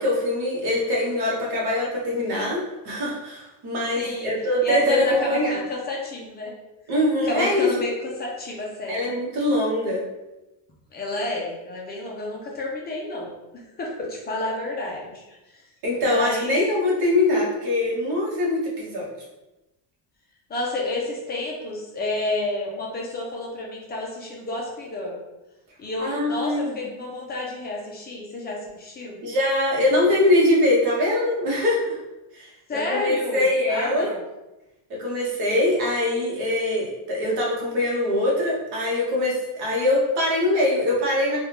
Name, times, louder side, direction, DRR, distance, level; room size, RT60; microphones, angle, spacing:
voice 1, 0.0-5.6 6.9-7.7 8.9-10.0 15.8-19.1 26.0-26.8 29.2-32.0 32.3-34.1 35.0-41.4, left 1 dB, 50° right, -4 dB, 1.2 m, -23 dB
voice 2, 4.0-4.3 4.6-6.5 7.2-9.0 10.9-13.3 13.8-15.6 16.0-16.6 20.5-25.2 25.8-29.2 32.7-34.2, left 2 dB, 20° left, -2 dB, 0.4 m, -30 dB
3.4 x 2.4 x 2.9 m, 0.99 s
cardioid pair, 160°, 49 cm